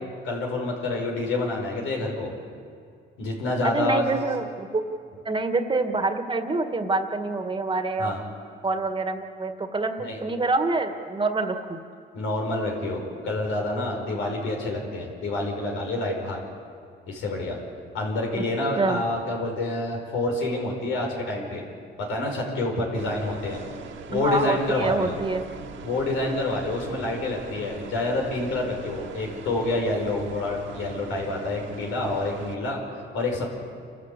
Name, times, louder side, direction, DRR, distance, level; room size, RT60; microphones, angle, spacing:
voice 1, 0.2-2.3 3.2-4.1 8.0-8.2 10.0-10.2 12.1-16.4 17.1-17.6 17.9-21.6 22.1-23.6 24.1-25.2 25.8-32.8 33.1-33.5, left 2 dB, 90° left, 0 dB, 5.3 m, -28 dB
voice 2, 3.6-4.8 5.3-8.1 8.6-11.8 18.4-18.5 18.8-19.0 24.1-25.4, right 3 dB, 25° right, 7 dB, 1.8 m, -26 dB
sound 1, 23.0-32.6, right 5 dB, 75° right, 2.0 m, -41 dB
28.5 x 13.0 x 8.3 m, 2.3 s
cardioid pair, 90°, 20 cm